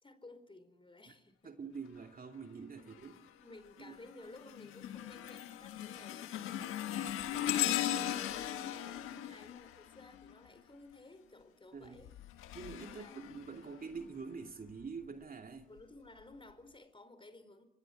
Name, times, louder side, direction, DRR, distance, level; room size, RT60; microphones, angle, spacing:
voice 1, 0.0-1.5 2.8-2.9 3.4-6.6 7.3-12.1 12.8-13.3 15.6-17.6, left 2 dB, 25° left, 4.5 m, -55 dB
voice 2, 1.4-3.2 3.8-4.0 11.7-12.0 12.5-15.7, right 5 dB, 45° right, 2.6 m, -46 dB
sound 1, 2.9-3.3 3.8-10.6 11.8-14.0 14.7-14.9 15.8-15.9, left 12 dB, 90° left, 1.5 m, -38 dB
26.5 x 20.5 x 7.8 m
supercardioid pair, 55°, 21 cm